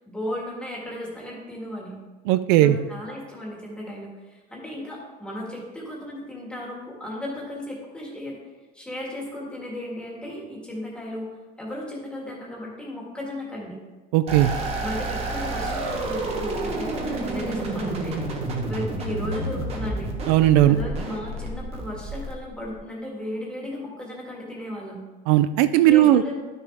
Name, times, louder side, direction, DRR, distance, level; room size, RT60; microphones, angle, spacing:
voice 1, 0.1-1.9 2.6-8.4 8.7-11.3 11.6-13.8 14.8-18.2 18.7-20.1 20.7-25.0 25.9-26.4, left 1 dB, 5° left, -4 dB, 1.8 m, -35 dB
voice 2, 2.3-2.8 14.1-14.5 20.3-20.8 25.3-26.2, right 13 dB, 75° right, 12 dB, 0.4 m, -17 dB
sound 1, 14.3-22.7, right 2 dB, 30° right, 1.2 m, -30 dB
11.5 x 6.4 x 3.5 m, 1.3 s
cardioid pair, 170°, 21 cm